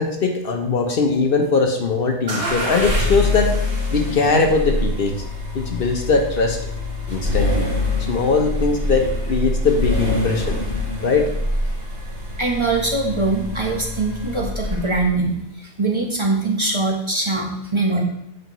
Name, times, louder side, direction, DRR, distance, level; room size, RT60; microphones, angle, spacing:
voice 1, 0.0-3.5 3.9-5.1 5.5-6.6 7.1-7.7 8.1-10.6 11.0-11.3, left 4 dB, 60° left, 3 dB, 1.0 m, -20 dB
sound 1, 2.3-15.1, left 2 dB, 75° right, 2.3 m, -25 dB
voice 2, 12.4-18.0, right 3 dB, 25° right, -1 dB, 1.0 m, -22 dB
8.1 x 5.4 x 3.0 m, 0.79 s
omnidirectional pair, 1.1 m